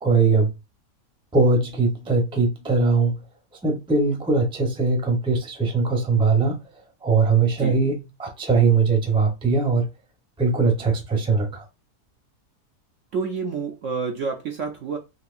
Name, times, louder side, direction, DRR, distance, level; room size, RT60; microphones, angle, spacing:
voice 1, 0.0-0.5 1.3-3.2 3.6-6.6 7.0-9.9 10.4-11.6, right 4 dB, 5° right, 0.6 m, -21 dB
voice 2, 13.1-15.0, right 5 dB, 65° right, 0.8 m, -28 dB
4.1 x 2.8 x 2.5 m
omnidirectional pair, 1.7 m